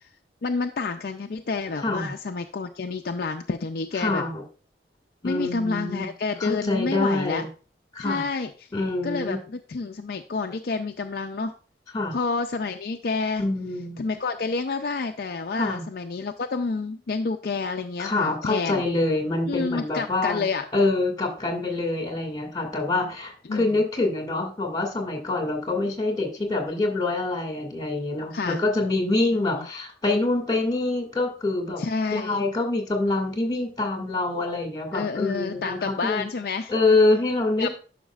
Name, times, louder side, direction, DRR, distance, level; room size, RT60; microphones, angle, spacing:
voice 1, 0.4-4.2 5.2-7.5 8.0-8.5 9.0-11.5 12.1-13.4 14.0-18.8 19.5-20.7 23.5-23.7 28.3-28.6 31.8-32.4 34.9-36.7 37.6-37.7, left 4 dB, 60° left, 5 dB, 0.5 m, -29 dB
voice 2, 1.8-2.1 4.0-4.4 5.2-6.1 6.4-7.5 7.9-8.2 8.7-9.4 11.9-12.1 13.4-14.0 15.6-15.8 18.0-20.5 20.7-31.8 32.1-36.2 36.7-37.7, left 2 dB, 20° left, 2 dB, 2.2 m, -25 dB
11.0 x 5.9 x 2.4 m, 0.37 s
head